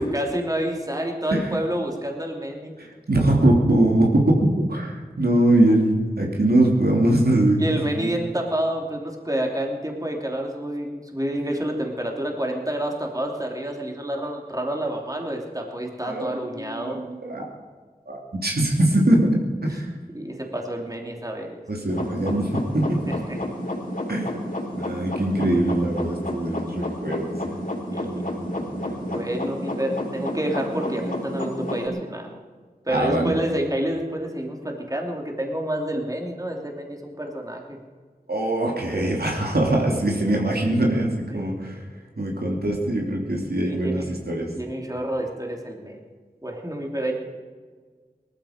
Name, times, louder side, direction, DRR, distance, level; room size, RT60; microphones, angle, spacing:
voice 1, 0.0-2.7 7.6-17.0 19.7-19.8 20.1-21.6 23.1-23.4 27.9-28.2 29.1-32.3 32.9-37.8 39.0-39.1 41.3-41.6 43.6-44.1 44.5-46.0 46.4-47.1, right 1 dB, 20° right, 1 dB, 3.0 m, -28 dB
voice 2, 2.8-7.6 8.0-8.1 16.1-17.4 18.1-19.3 19.6-19.9 21.7-22.5 22.7-23.0 24.1-24.4 24.7-27.6 28.0-29.2 32.9-33.3 38.3-41.8 42.2-44.5, right 1 dB, 80° right, -1 dB, 3.0 m, -22 dB
sound 1, 21.9-31.9, left 1 dB, 55° left, 3.8 m, -30 dB
19.5 x 14.0 x 5.1 m, 1.6 s
wide cardioid pair, 50°, 16 cm